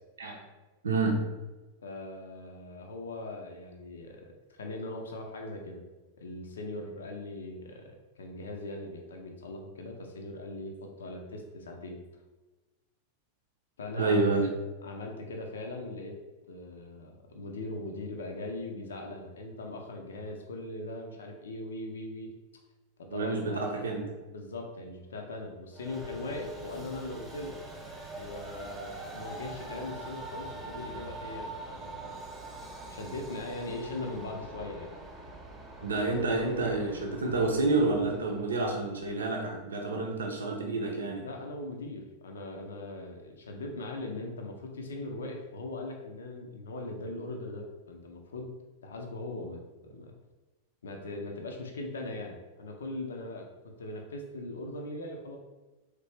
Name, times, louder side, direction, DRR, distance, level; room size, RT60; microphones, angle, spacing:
voice 1, 0.8-1.2 14.0-14.5 23.1-24.1 35.8-41.2, right 3 dB, 70° right, 1 dB, 0.6 m, -29 dB
voice 2, 1.8-5.8 6.2-12.0 13.8-14.2 14.8-16.2 16.5-22.3 23.0-23.6 24.3-27.6 28.2-32.1 32.9-34.9 41.2-48.5 48.8-50.1 50.8-55.4, left 2 dB, 65° left, 3 dB, 0.5 m, -40 dB
Train, 25.7-39.2, right 2 dB, 15° right, 0.9 m, -44 dB
3.9 x 3.2 x 3.2 m, 1.2 s
figure-of-eight pair, 90°, 0 cm